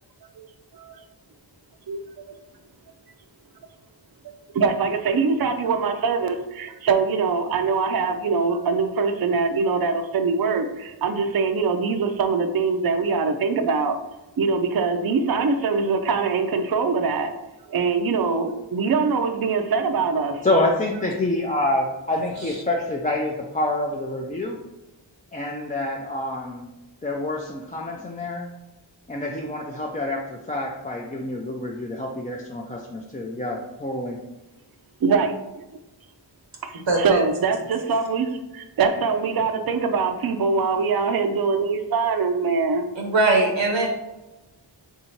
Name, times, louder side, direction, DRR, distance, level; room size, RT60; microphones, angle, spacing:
voice 1, 4.5-14.0 14.4-17.3 17.7-20.4 35.0-35.6 36.6-42.9, right 4 dB, 55° right, 6 dB, 0.5 m, -23 dB
voice 2, 20.4-24.6 25.3-26.7 27.0-28.5 29.1-34.2, left 1 dB, 20° left, -1 dB, 0.4 m, -27 dB
voice 3, 36.7-37.2 43.0-43.9, right 2 dB, 80° right, 1 dB, 0.9 m, -21 dB
3.6 x 2.8 x 4.4 m, 1.0 s
wide cardioid pair, 50°, 44 cm